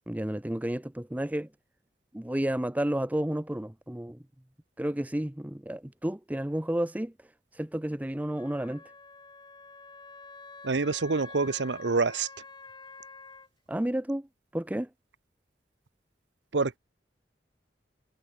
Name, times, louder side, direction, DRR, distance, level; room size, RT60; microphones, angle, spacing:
voice 1, 0.1-1.5 2.1-4.2 4.8-7.1 7.5-8.8 13.7-14.3 14.5-14.9, right 1 dB, 10° right, 0.7 m, -31 dB
Wind instrument woodwind instrument, 8.4-13.5, left 4 dB, 25° left, 7.7 m, -48 dB
voice 2, 10.6-12.3 16.5-16.8, right 4 dB, 85° right, 0.9 m, -27 dB
head